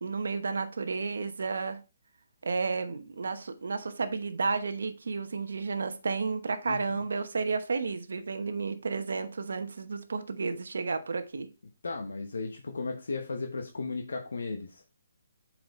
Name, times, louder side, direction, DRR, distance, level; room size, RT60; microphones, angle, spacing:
voice 1, 0.0-1.8 2.4-11.5, right 4 dB, 75° right, 0.9 m, -32 dB
voice 2, 6.7-7.0 11.8-14.8, left 3 dB, 80° left, 1.0 m, -35 dB
7.6 x 4.7 x 3.1 m
hypercardioid pair, 150°, 0 cm